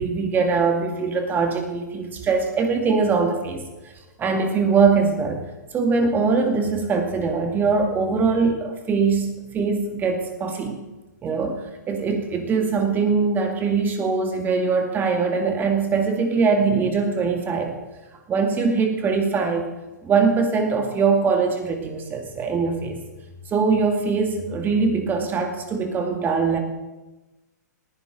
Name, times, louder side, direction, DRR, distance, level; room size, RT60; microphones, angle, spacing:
voice 1, 0.0-3.7 4.2-5.4 5.7-10.8 11.2-17.8 18.3-19.6 20.0-23.0 23.5-26.6, right 4 dB, 20° right, 4 dB, 2.2 m, -22 dB
19.0 x 15.0 x 4.0 m, 1.1 s
hypercardioid pair, 125°, 10 cm